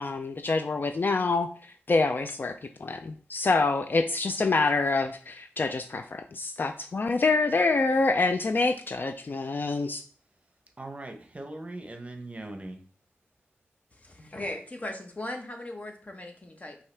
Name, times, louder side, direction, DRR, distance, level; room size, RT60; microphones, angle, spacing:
voice 1, 0.0-1.5 1.9-2.5 2.8-10.0, left 3 dB, 50° left, 8 dB, 0.4 m, -26 dB
voice 2, 10.8-12.8, right 2 dB, 30° right, 5 dB, 0.8 m, -40 dB
voice 3, 13.9-16.8, left 1 dB, 35° left, 4 dB, 0.9 m, -38 dB
5.4 x 2.8 x 3.3 m, 0.42 s
cardioid pair, 60°, 4 cm